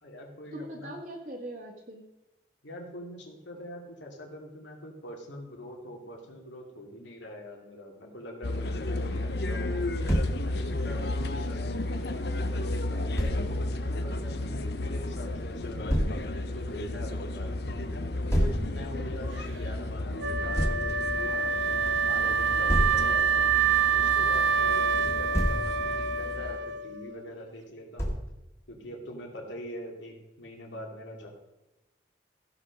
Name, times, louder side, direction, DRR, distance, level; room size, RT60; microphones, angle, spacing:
voice 1, 0.0-0.9 2.6-9.9 10.3-15.8 16.3-17.8 18.2-21.8 22.1-23.4 23.9-28.1 28.7-31.3, equal, 85° left, 0 dB, 2.7 m, -43 dB
voice 2, 0.5-2.0, equal, 45° right, -2 dB, 1.7 m, -40 dB
sound 1, 8.4-26.6, left 2 dB, 60° left, 0.7 m, -33 dB
Thump thud, 10.1-10.4 13.2-13.4 15.9-16.2 18.3-18.6 20.5-20.8 22.7-23.0 25.1-25.6 28.0-28.3, equal, 15° left, 1.9 m, -26 dB
Wind instrument woodwind instrument, 20.2-27.2, right 6 dB, 80° right, 0.6 m, -26 dB
15.5 x 5.8 x 5.3 m, 1.0 s
head